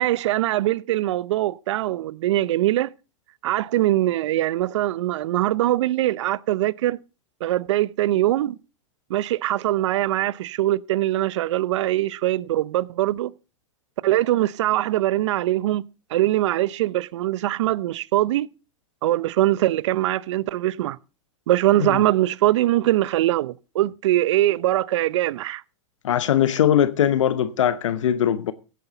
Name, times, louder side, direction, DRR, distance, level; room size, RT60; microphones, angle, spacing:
voice 1, 0.0-2.9 3.4-7.0 7.4-8.6 9.1-13.3 14.0-15.8 16.1-18.5 19.0-21.0 21.5-25.6, right 15 dB, 70° right, 0.6 m, -22 dB
voice 2, 26.0-28.5, left 10 dB, 80° left, 0.8 m, -20 dB
16.0 x 9.4 x 3.9 m
hypercardioid pair, 115°, 16 cm